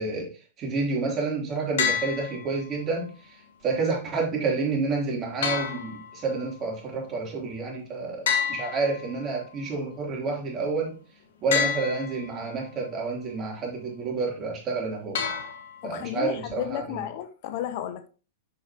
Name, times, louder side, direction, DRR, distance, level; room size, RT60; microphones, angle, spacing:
voice 1, 0.0-11.0 11.4-15.3 15.8-17.0, right 3 dB, 30° right, 3.3 m, -29 dB
sound 1, 1.8-2.8 5.4-6.5 8.3-9.5 11.5-12.5 15.1-16.1, left 7 dB, 70° left, 1.5 m, -29 dB
voice 2, 15.8-18.1, left 11 dB, 55° left, 0.7 m, -33 dB
7.2 x 6.4 x 3.0 m
hypercardioid pair, 110°, 0 cm